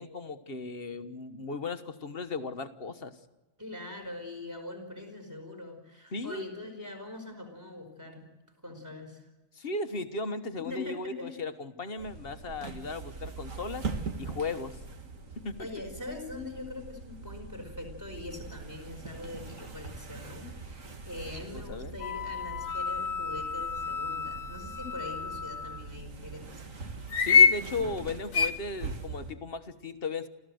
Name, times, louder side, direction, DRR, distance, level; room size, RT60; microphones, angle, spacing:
voice 1, 0.0-3.2 6.1-6.5 9.5-13.9 14.2-14.8 15.4-15.6 21.5-22.0 27.2-30.3, left 3 dB, 45° left, 9 dB, 1.4 m, -36 dB
voice 2, 3.6-8.3 8.6-9.3 10.6-11.3 15.6-26.7, left 2 dB, 15° right, 2 dB, 5.0 m, -42 dB
sound 1, 12.0-29.3, right 4 dB, 75° right, 2.2 m, -42 dB
sound 2, 22.0-25.8 27.1-27.6 28.3-28.5, left 6 dB, 90° left, 1.4 m, -27 dB
29.0 x 14.5 x 7.9 m, 1.1 s
omnidirectional pair, 1.4 m